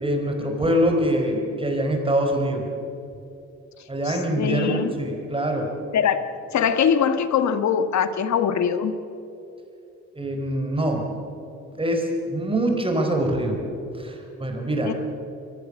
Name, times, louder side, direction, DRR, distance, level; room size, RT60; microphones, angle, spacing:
voice 1, 0.0-2.7 3.9-5.7 10.1-11.1 11.8-13.6 14.0-14.9, right 1 dB, 20° right, 2 dB, 4.2 m, -24 dB
voice 2, 4.0-4.9 5.9-6.2 6.5-8.9 14.8-14.9, left 7 dB, 65° left, 10 dB, 1.5 m, -22 dB
24.5 x 15.0 x 7.4 m, 2.8 s
cardioid pair, 90°, 30 cm